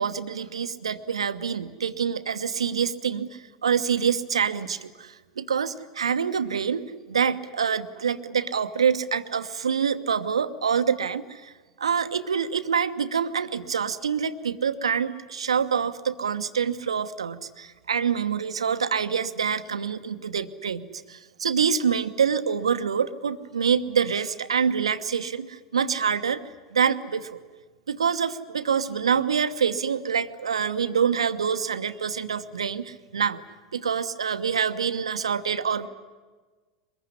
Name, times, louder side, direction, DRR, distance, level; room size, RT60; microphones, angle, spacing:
voice 1, 0.0-11.5 11.8-26.4 26.7-27.4 27.9-33.4 33.7-35.9, right 7 dB, 75° right, 11 dB, 1.1 m, -26 dB
23.5 x 21.5 x 9.9 m, 1.4 s
figure-of-eight pair, 85°, 3 cm